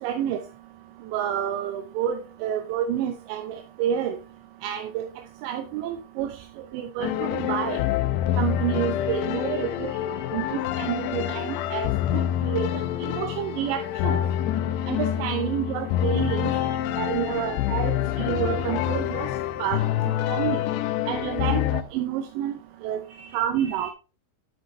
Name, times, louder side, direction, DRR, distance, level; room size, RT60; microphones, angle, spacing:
voice 1, 0.0-0.4 1.1-4.2 4.6-5.0 5.4-6.4 6.7-7.8 8.4-9.9 10.3-14.2 14.9-16.5 17.0-19.3 19.6-19.8 20.3-20.6 21.1-23.0 23.3-23.9, right 10 dB, 85° right, 7 dB, 3.0 m, -29 dB
sound 1, 7.0-21.8, left 11 dB, 85° left, 2.7 m, -26 dB
voice 2, 9.0-10.3 16.4-16.8 19.8-20.8 23.1-23.9, right 4 dB, 60° right, 1 dB, 4.3 m, -49 dB
9.6 x 8.4 x 3.2 m, 0.33 s
omnidirectional pair, 5.1 m